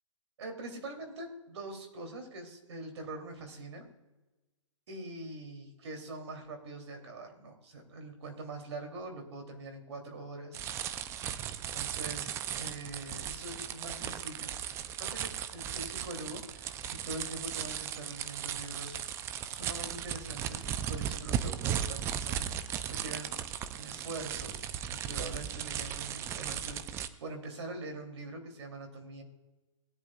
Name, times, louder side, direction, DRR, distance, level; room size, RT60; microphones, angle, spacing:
voice 1, 0.4-3.9 4.9-11.0 11.7-14.5 15.0-19.0 19.5-23.4 23.7-29.2, right 2 dB, 60° right, 4 dB, 3.2 m, -43 dB
sound 1, 10.5-27.1, right 9 dB, 15° right, 0.5 m, -37 dB
19.0 x 10.0 x 2.4 m, 1.1 s
hypercardioid pair, 135°, 17 cm